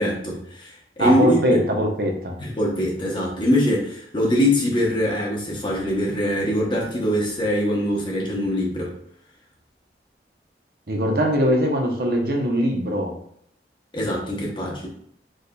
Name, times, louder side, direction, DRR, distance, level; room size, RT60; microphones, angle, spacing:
voice 1, 0.0-1.6 2.4-8.9 13.9-14.9, equal, 25° left, -3 dB, 0.9 m, -23 dB
voice 2, 1.0-2.3 10.9-13.1, equal, 60° right, 2 dB, 0.9 m, -21 dB
4.9 x 4.1 x 2.3 m, 0.66 s
head